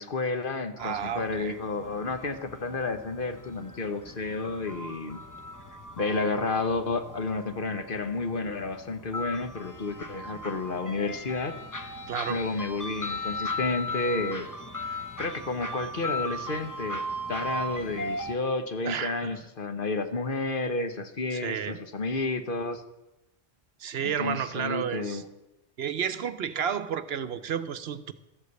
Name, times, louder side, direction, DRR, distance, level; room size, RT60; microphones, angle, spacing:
voice 1, 0.0-5.2 6.0-11.6 12.3-14.5 14.9-17.0 17.3-22.8 24.0-25.2, left 3 dB, 50° left, 8 dB, 1.2 m, -31 dB
sound 1, 0.8-18.3, left 1 dB, 20° left, 0.7 m, -38 dB
voice 2, 0.8-1.6 12.1-12.4 18.8-19.4 21.3-21.8 23.8-25.2 25.8-28.1, right 8 dB, 65° right, 12 dB, 0.9 m, -31 dB
13.0 x 8.2 x 8.1 m, 0.95 s
omnidirectional pair, 1.2 m